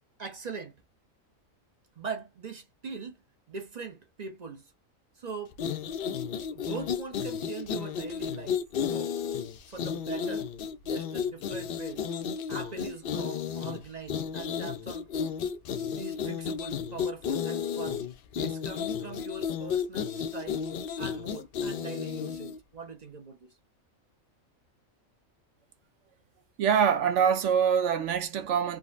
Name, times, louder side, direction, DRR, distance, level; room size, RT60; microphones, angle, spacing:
voice 1, 0.2-0.8 2.0-3.2 3.5-4.7 5.2-5.6 6.5-8.6 8.9-9.1 9.7-10.5 10.8-12.0 12.5-15.1 16.0-18.0 18.3-20.6 21.0-23.5, right 4 dB, 45° right, 0.6 m, -41 dB
sound 1, 5.5-22.6, left 7 dB, 65° left, 0.5 m, -33 dB
voice 2, 26.6-28.8, right 7 dB, 65° right, 0.9 m, -24 dB
3.7 x 2.1 x 2.5 m
omnidirectional pair, 1.4 m